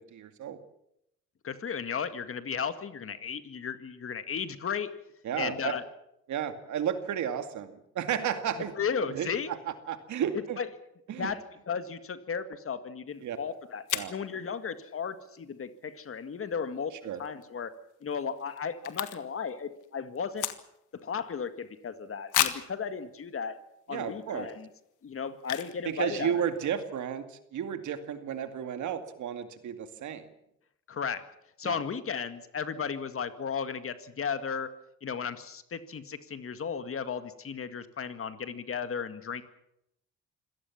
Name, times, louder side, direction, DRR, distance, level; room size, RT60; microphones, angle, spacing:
voice 1, 0.1-0.6 5.2-5.8 6.3-8.7 9.1-10.6 11.1-11.3 13.2-13.4 13.9-14.1 17.0-17.2 23.9-24.5 25.8-30.3 31.6-31.8, right 9 dB, 70° right, 9 dB, 2.3 m, -33 dB
voice 2, 1.4-4.9 5.4-5.8 8.7-9.5 10.6-10.7 11.2-11.4 11.7-13.8 14.1-16.9 17.2-17.7 18.0-20.5 21.0-23.6 23.9-24.7 25.0-26.4 30.9-31.2 31.6-34.7 35.0-39.4, left 6 dB, 45° left, 10 dB, 2.0 m, -35 dB
sound 1, 13.2-13.3 13.9-14.2 17.2-17.4 17.7-17.8 18.0-19.5 19.7-21.0 21.5-21.6 22.3-22.8 23.4-23.5 24.0-24.2 25.4-25.8 26.1-26.2 26.4-26.7, left 13 dB, 90° left, 1.6 m, -32 dB
25.5 x 17.5 x 7.3 m, 0.80 s
cardioid pair, 90°, 30 cm